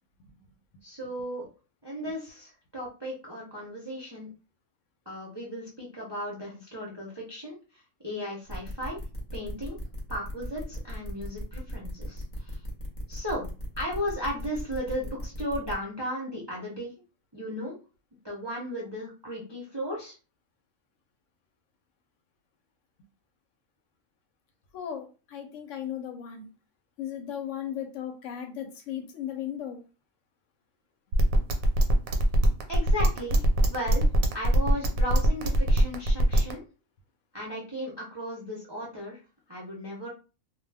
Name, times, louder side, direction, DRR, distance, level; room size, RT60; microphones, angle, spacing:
voice 1, 0.8-1.5 1.8-4.3 5.1-7.6 8.0-9.0 9.3-9.8 10.1-12.6 13.1-13.4 13.8-16.9 17.3-17.7 18.2-20.1 32.7-34.0 34.3-36.6 37.3-39.2 39.5-40.1, equal, 30° right, -4 dB, 0.5 m, -35 dB
sound 1, 8.5-15.7, equal, 40° left, 0.8 m, -38 dB
voice 2, 24.7-26.5 27.0-29.8, left 9 dB, 70° left, 5 dB, 0.9 m, -36 dB
sound 2, 31.1-36.5, right 1 dB, 85° right, 1.0 m, -22 dB
2.2 x 2.2 x 3.3 m, 0.34 s
omnidirectional pair, 1.4 m